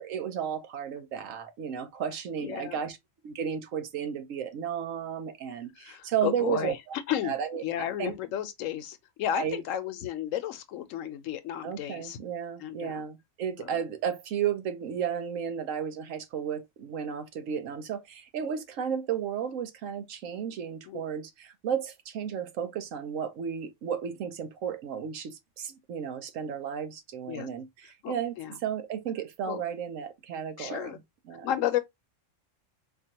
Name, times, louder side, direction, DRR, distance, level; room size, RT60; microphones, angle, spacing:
voice 1, 0.0-3.0 3.2-6.7 7.2-7.6 8.0-8.1 9.3-9.6 11.6-31.0 31.3-31.5, right 8 dB, 80° right, 1.1 m, -33 dB
voice 2, 2.4-2.8 5.8-6.8 7.1-7.3 7.6-12.2 12.6-13.0 13.6-13.8 20.9-21.0 27.3-27.5 28.0-28.6 29.5-29.6 30.6-31.0 31.4-31.8, left 11 dB, 80° left, 1.0 m, -33 dB
4.4 x 2.5 x 2.7 m
omnidirectional pair, 1.3 m